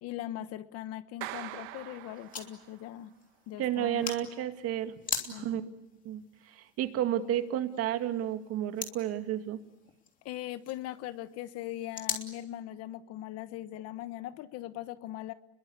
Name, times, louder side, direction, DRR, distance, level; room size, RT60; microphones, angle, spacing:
voice 1, 0.0-3.1 3.5-4.1 5.3-5.7 10.2-15.3, left 13 dB, 45° left, 13 dB, 1.3 m, -40 dB
Clapping, 1.2-2.9, right 17 dB, 70° right, 1.5 m, -43 dB
sound 1, 1.3-12.3, left 6 dB, 25° left, 3.2 m, -43 dB
voice 2, 3.6-4.9 5.3-5.8 6.0-9.6, right 11 dB, 45° right, 8 dB, 2.4 m, -32 dB
30.0 x 22.0 x 8.4 m, 0.89 s
supercardioid pair, 135°, 33 cm